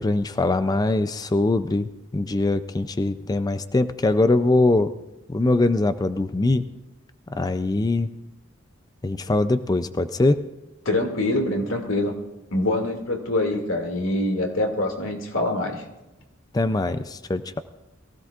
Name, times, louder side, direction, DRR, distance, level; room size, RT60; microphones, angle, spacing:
voice 1, 0.0-4.9 5.3-6.6 7.3-8.1 9.0-10.4 16.5-17.6, left 2 dB, 20° left, 11 dB, 0.4 m, -22 dB
voice 2, 10.9-12.2 12.5-15.8, left 1 dB, 90° left, 2 dB, 2.3 m, -24 dB
23.0 x 16.0 x 2.4 m, 1.0 s
head